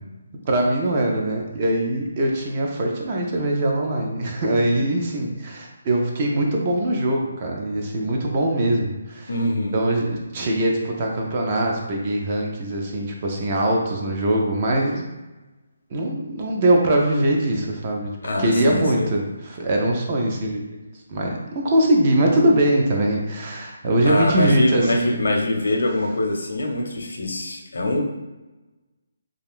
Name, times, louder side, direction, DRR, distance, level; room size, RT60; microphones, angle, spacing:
voice 1, 0.5-9.3 9.7-15.1 15.9-20.6 21.1-25.2, right 1 dB, 25° right, 0 dB, 0.4 m, -22 dB
voice 2, 9.3-9.8 18.2-19.1 24.0-28.0, left 1 dB, 85° left, 2 dB, 0.6 m, -23 dB
2.4 x 2.3 x 3.5 m, 1.1 s
hypercardioid pair, 175°, 0 cm